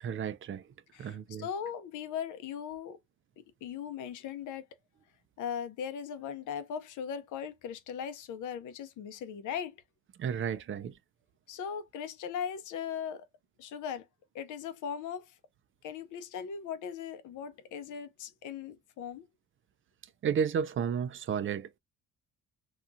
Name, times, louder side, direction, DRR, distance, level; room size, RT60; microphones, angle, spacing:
voice 1, 0.0-0.7 1.0-1.5 10.2-10.9 20.2-21.8, right 7 dB, 45° right, 0.4 m, -32 dB
voice 2, 0.9-3.0 3.6-4.6 5.4-9.8 11.5-13.2 13.6-14.1 14.3-15.3 15.8-19.2, left 8 dB, 80° left, 0.7 m, -38 dB
2.9 x 2.3 x 2.5 m
cardioid pair, 90°, 30 cm